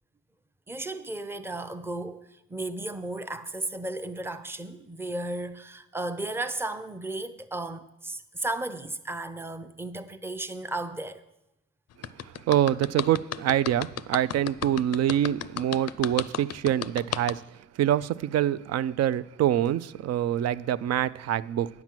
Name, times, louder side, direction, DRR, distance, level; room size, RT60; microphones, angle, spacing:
voice 1, 0.7-11.2, right 2 dB, 10° right, 0.6 m, -34 dB
sound 1, 12.0-17.3, left 11 dB, 55° left, 0.5 m, -32 dB
voice 2, 12.5-17.4 17.8-21.7, right 11 dB, 60° right, 0.4 m, -25 dB
9.4 x 5.9 x 7.5 m
cardioid pair, 90°, 30 cm